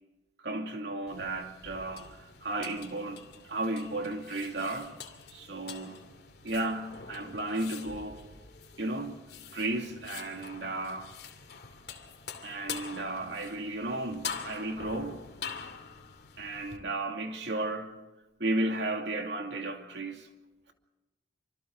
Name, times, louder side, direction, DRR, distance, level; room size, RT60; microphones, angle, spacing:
voice 1, 0.4-4.9 5.3-6.1 6.4-8.2 8.8-9.2 9.5-11.1 12.4-15.2 16.4-18.0 18.4-20.3, right 2 dB, 80° right, 2.8 m, -34 dB
sound 1, 1.1-16.8, left 6 dB, 70° left, 2.6 m, -45 dB
28.0 x 26.0 x 4.0 m
head